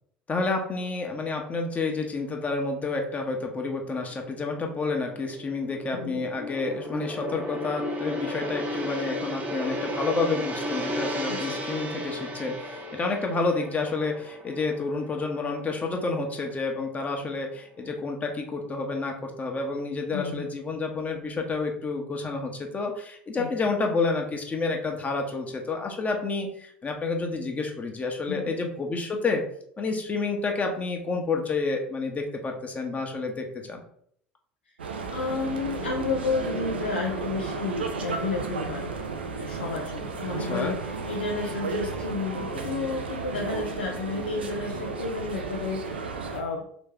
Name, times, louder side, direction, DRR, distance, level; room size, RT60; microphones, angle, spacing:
voice 1, 0.3-29.4 29.8-33.8 40.4-40.8, left 3 dB, 25° left, 2 dB, 0.9 m, -29 dB
Gong, 4.1-16.4 16.8-17.0, left 1 dB, 30° right, 0.8 m, -35 dB
voice 2, 20.1-20.5 23.4-23.7 28.3-28.5 35.1-38.9 39.3-40.8 41.1-46.7, left 4 dB, 90° left, -1 dB, 0.5 m, -32 dB
sound 1, 34.8-46.4, right 4 dB, 90° right, 0.4 m, -33 dB
3.2 x 3.0 x 3.6 m, 0.65 s
hypercardioid pair, 70°, 5 cm